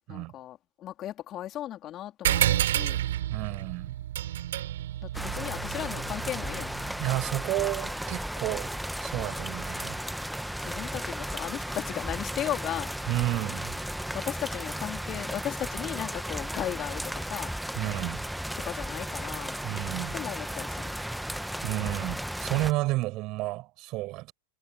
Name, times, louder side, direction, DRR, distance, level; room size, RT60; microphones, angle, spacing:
voice 1, 0.1-3.0 5.0-6.7 10.6-12.9 14.1-17.5 18.6-19.6 20.1-20.9, left 12 dB, 30° left, 3.4 m, -36 dB
sound 1, 2.2-7.2, right 12 dB, 60° right, 5.6 m, -30 dB
voice 2, 3.3-4.0 7.0-10.0 13.1-13.8 17.7-18.3 19.6-20.2 21.6-24.3, right 20 dB, 40° right, 6.1 m, -31 dB
sound 2, 5.1-22.7, equal, ahead, 1.8 m, -35 dB
figure-of-eight pair, 90°, 0 cm